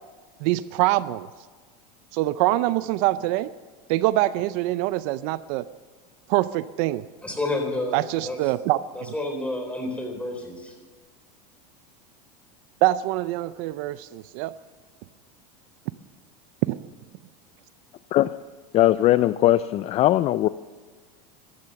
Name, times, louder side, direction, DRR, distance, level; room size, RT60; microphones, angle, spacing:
voice 1, 0.4-1.3 2.1-3.5 3.9-5.6 6.3-7.1 7.9-8.8 12.8-14.5 16.7-16.8, right 16 dB, 60° right, 16 dB, 0.5 m, -24 dB
voice 2, 7.2-8.4 8.9-10.7, left 2 dB, 5° left, 3 dB, 3.9 m, -30 dB
voice 3, 18.7-20.5, left 14 dB, 35° left, 15 dB, 0.4 m, -20 dB
14.5 x 13.0 x 6.9 m, 1.5 s
supercardioid pair, 130°, 20 cm